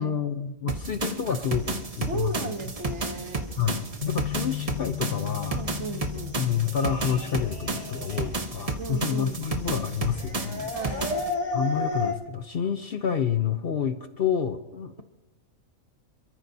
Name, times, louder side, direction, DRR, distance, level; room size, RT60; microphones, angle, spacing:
voice 1, 0.0-2.3 3.6-5.6 6.4-11.0 11.5-15.0, left 8 dB, 55° left, 9 dB, 0.8 m, -29 dB
sound 1, 0.7-11.3, right 3 dB, 30° right, 0.9 m, -32 dB
sound 2, 1.6-12.1, left 2 dB, 30° left, 3.1 m, -36 dB
voice 2, 2.1-3.5 5.5-6.4 8.8-9.4 10.7-11.2, right 4 dB, 60° right, 7 dB, 1.4 m, -35 dB
Bass guitar, 4.0-10.3, left 17 dB, 70° left, 1.3 m, -38 dB
27.5 x 13.5 x 2.7 m, 1.0 s
omnidirectional pair, 1.4 m